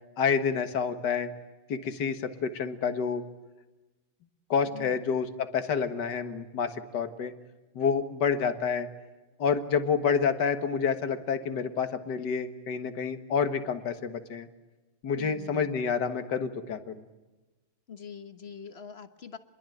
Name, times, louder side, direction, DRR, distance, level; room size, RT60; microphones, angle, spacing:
voice 1, 0.2-1.3 1.7-3.2 4.5-7.3 7.8-8.9 9.4-14.5 15.0-16.9, left 6 dB, 55° left, 9 dB, 2.0 m, -28 dB
voice 2, 15.2-15.7 17.9-19.4, left 7 dB, 35° left, 10 dB, 1.2 m, -43 dB
28.5 x 22.0 x 9.2 m, 1.1 s
omnidirectional pair, 2.2 m